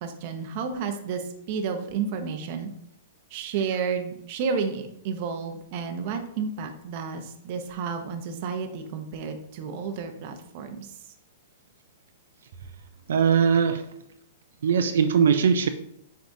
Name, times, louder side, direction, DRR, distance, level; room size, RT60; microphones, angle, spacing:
voice 1, 0.0-2.7 3.3-10.9, right 5 dB, 35° right, 6 dB, 0.8 m, -31 dB
voice 2, 13.1-13.8 14.6-15.7, right 6 dB, 75° right, 7 dB, 0.5 m, -20 dB
8.2 x 4.7 x 2.7 m, 0.75 s
hypercardioid pair, 170°, 0 cm